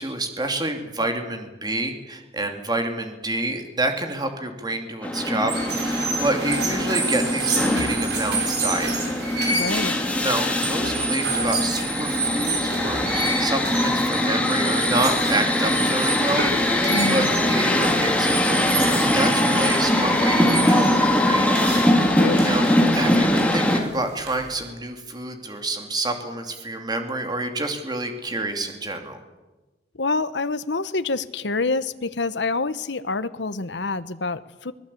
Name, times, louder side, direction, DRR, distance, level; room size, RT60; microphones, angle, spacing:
voice 1, 0.0-8.9 10.2-16.8 17.1-22.0 22.4-29.2, right 2 dB, 25° right, 5 dB, 2.8 m, -28 dB
sound 1, 5.0-23.8, left 1 dB, 10° left, 3.0 m, -22 dB
sound 2, 5.4-24.7, right 3 dB, 65° right, 7.3 m, -29 dB
voice 2, 9.5-10.0 16.9-17.3 22.2-22.4 30.0-34.7, left 3 dB, 80° left, 12 dB, 1.1 m, -26 dB
24.0 x 20.0 x 8.5 m, 1.1 s
head